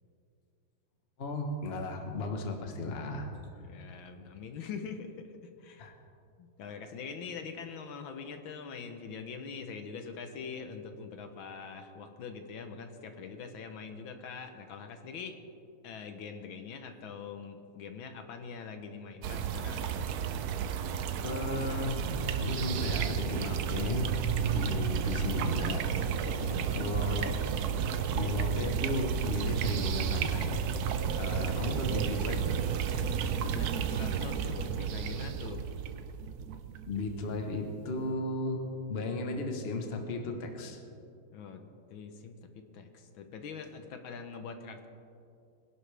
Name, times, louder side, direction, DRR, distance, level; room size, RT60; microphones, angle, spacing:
voice 1, 1.2-3.3 5.8-5.9 21.2-24.1 24.5-25.9 26.2-27.4 28.1-30.5 31.2-32.6 36.9-38.6 38.9-40.8, left 2 dB, 35° left, 4 dB, 1.2 m, -35 dB
voice 2, 3.6-5.9 6.4-15.4 15.8-19.9 24.4-25.0 26.4-26.7 31.3-31.8 33.4-35.7 41.3-41.6 41.9-44.9, left 5 dB, 75° left, 7 dB, 1.7 m, -44 dB
sound 1, 19.2-37.4, right 7 dB, 70° right, 0.9 m, -32 dB
21.5 x 11.0 x 3.4 m, 2.6 s
omnidirectional pair, 2.2 m